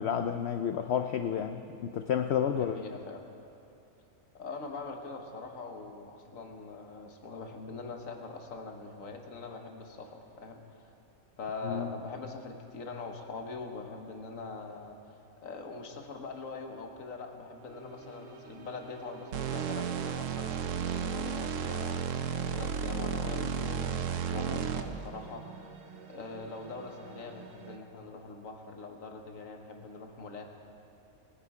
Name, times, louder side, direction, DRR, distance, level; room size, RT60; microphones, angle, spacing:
voice 1, 0.0-2.8 11.6-11.9, left 8 dB, 80° left, 8 dB, 0.6 m, -31 dB
voice 2, 2.5-3.2 4.3-10.9 11.4-15.2 15.4-22.2 22.5-25.6 26.1-30.4, left 3 dB, 60° left, 4 dB, 1.5 m, -43 dB
sound 1, 17.5-27.8, right 6 dB, 90° right, 1.5 m, -50 dB
sound 2, 19.3-25.1, right 7 dB, 65° right, 0.9 m, -33 dB
20.5 x 9.8 x 4.8 m, 2.7 s
omnidirectional pair, 1.7 m